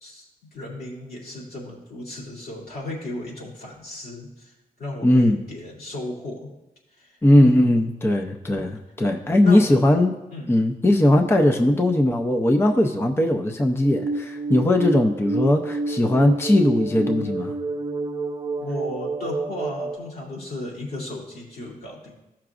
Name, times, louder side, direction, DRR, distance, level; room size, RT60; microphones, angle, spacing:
voice 1, 0.0-4.5 4.8-6.5 7.0-7.8 9.4-9.7 10.3-10.5 18.6-22.1, left 2 dB, 80° left, -4 dB, 2.5 m, -35 dB
voice 2, 5.0-5.4 7.2-10.1 10.5-17.5, left 1 dB, 15° left, 4 dB, 0.5 m, -19 dB
sound 1, 13.8-20.0, right 2 dB, 30° right, 0.6 m, -29 dB
14.0 x 5.9 x 2.5 m, 0.96 s
wide cardioid pair, 115°, 15 cm